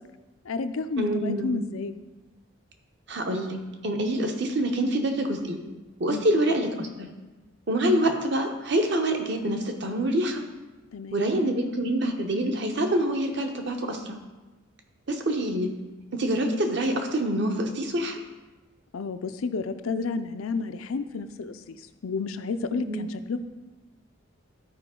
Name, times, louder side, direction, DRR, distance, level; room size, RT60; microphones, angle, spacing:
voice 1, 0.4-1.9 6.1-6.3 10.9-11.3 18.9-23.4, left 4 dB, 85° left, 10 dB, 0.5 m, -31 dB
voice 2, 1.0-1.7 3.1-5.6 6.0-7.1 7.7-10.4 11.1-14.2 15.1-15.7 16.1-18.2 22.7-23.1, right 1 dB, 55° right, 4 dB, 0.9 m, -26 dB
12.5 x 4.9 x 3.8 m, 1.1 s
head